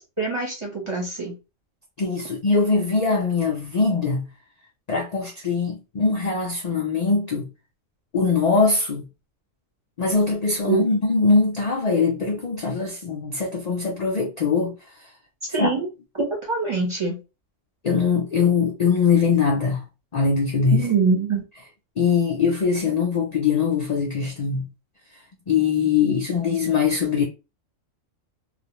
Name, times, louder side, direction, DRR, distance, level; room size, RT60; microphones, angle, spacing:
voice 1, 0.2-1.3 10.7-10.9 15.5-15.9 16.2-17.2 20.7-21.4, right 4 dB, 30° right, 0.7 m, -24 dB
voice 2, 2.0-4.3 4.9-7.5 8.1-9.1 10.0-14.8 15.6-15.7 17.8-19.8 20.1-20.9 22.0-24.7 25.5-27.2, left 5 dB, 65° left, 0.4 m, -22 dB
2.4 x 2.1 x 2.9 m
omnidirectional pair, 1.4 m